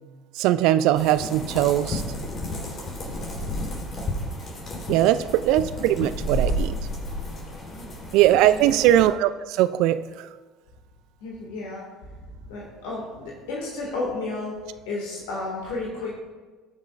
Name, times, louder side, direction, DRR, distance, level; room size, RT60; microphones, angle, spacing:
voice 1, 0.4-2.0 4.9-6.7 8.1-10.0, right 13 dB, 65° right, 14 dB, 0.3 m, -20 dB
sound 1, 0.9-9.1, equal, 40° left, 3.3 m, -31 dB
voice 2, 5.2-5.6 7.7-7.9 8.4-8.8 11.2-11.8 12.3-14.6 14.9-16.2, left 3 dB, 70° left, -3 dB, 1.8 m, -33 dB
19.5 x 6.7 x 2.4 m, 1.3 s
hypercardioid pair, 60°, 0 cm